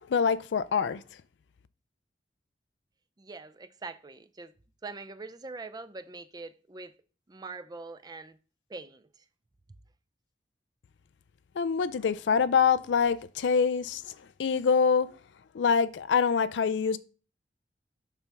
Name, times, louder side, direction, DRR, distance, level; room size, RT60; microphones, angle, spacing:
voice 1, 0.1-1.0 11.6-14.1 14.4-15.1 15.5-17.0, left 6 dB, 85° left, 0.4 m, -25 dB
voice 2, 3.2-4.5 4.8-7.0 7.3-8.4 8.7-9.3, right 3 dB, 25° right, 0.4 m, -43 dB
6.8 x 5.8 x 3.4 m
head